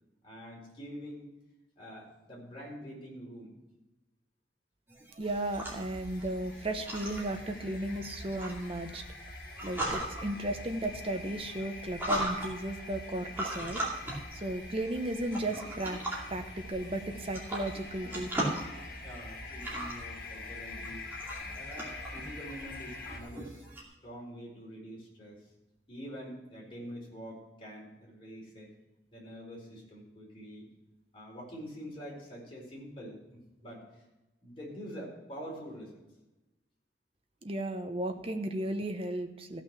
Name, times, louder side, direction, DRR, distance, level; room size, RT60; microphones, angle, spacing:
voice 1, 0.2-1.3 1.8-3.5 19.0-21.1 21.5-23.6 24.0-25.5 25.9-28.7 29.1-30.6 31.1-34.0 34.4-36.0, equal, 30° left, -4 dB, 4.5 m, -45 dB
sound 1, 4.9-23.8, right 1 dB, 10° right, 2.4 m, -40 dB
sound 2, 5.2-23.2, left 2 dB, 55° left, 2.0 m, -45 dB
voice 2, 5.2-9.0 9.6-13.8 14.3-16.0 16.3-18.3 37.4-39.6, right 1 dB, 30° right, 6 dB, 1.0 m, -35 dB
15.0 x 6.1 x 6.1 m, 1.0 s
head